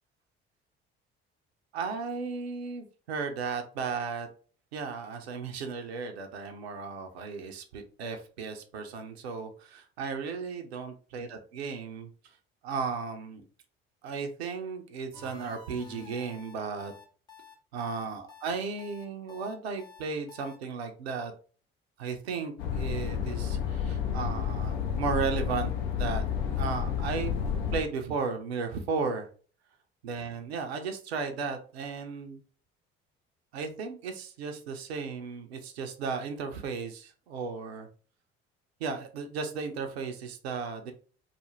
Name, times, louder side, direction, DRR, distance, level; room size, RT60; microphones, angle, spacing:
voice 1, 1.7-4.3 4.7-12.1 12.6-13.5 14.0-16.9 17.7-21.3 22.0-25.7 26.0-26.2 26.6-27.3 27.7-29.3 30.0-32.4 33.5-37.9 38.8-40.9, right 5 dB, 80° right, 5 dB, 0.5 m, -35 dB
sound 1, 15.1-20.6, left 4 dB, 15° left, 0.7 m, -50 dB
sound 2, 22.6-27.8, left 7 dB, 75° left, 0.5 m, -30 dB
2.4 x 2.0 x 3.0 m, 0.39 s
figure-of-eight pair, 50°, 31 cm